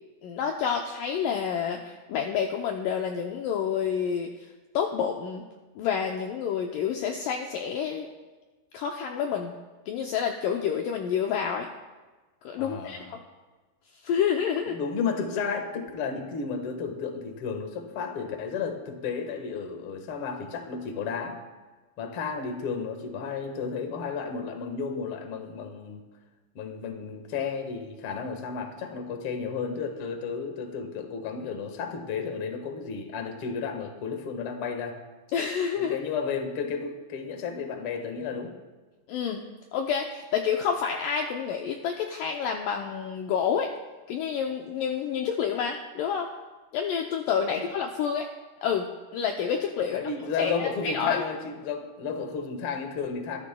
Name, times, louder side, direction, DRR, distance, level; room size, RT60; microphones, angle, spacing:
voice 1, 0.2-4.3 4.7-5.4 5.8-8.1 8.7-9.5 9.9-11.7 12.4-13.2 14.0-14.8 35.3-36.0 39.1-39.5 39.7-43.7 44.1-46.3 46.7-48.3 48.6-50.0 50.4-51.2, left 7 dB, 85° left, 2 dB, 1.9 m, -28 dB
voice 2, 12.6-13.1 14.7-21.4 22.0-26.0 26.5-35.0 35.8-38.5 47.5-47.6 49.9-53.4, left 5 dB, 60° left, 4 dB, 1.4 m, -33 dB
23.5 x 13.5 x 2.3 m, 1.2 s
omnidirectional pair, 4.8 m